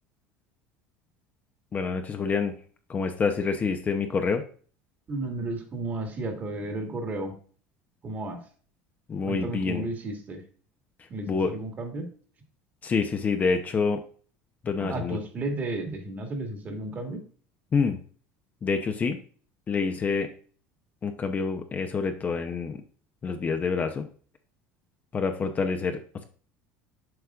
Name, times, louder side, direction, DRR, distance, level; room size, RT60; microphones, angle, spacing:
voice 1, 1.7-2.5 2.9-4.4 9.1-9.9 11.3-11.5 12.8-14.0 14.6-15.2 17.7-18.0 18.6-19.2 19.7-20.3 21.0-22.8 23.2-24.1 25.1-26.2, left 5 dB, 25° left, 6 dB, 0.7 m, -27 dB
voice 2, 5.1-7.3 8.0-8.4 9.2-10.4 11.1-12.1 14.8-17.2, right 2 dB, 30° right, 4 dB, 1.8 m, -33 dB
7.9 x 5.4 x 2.4 m, 0.43 s
supercardioid pair, 120°, 6 cm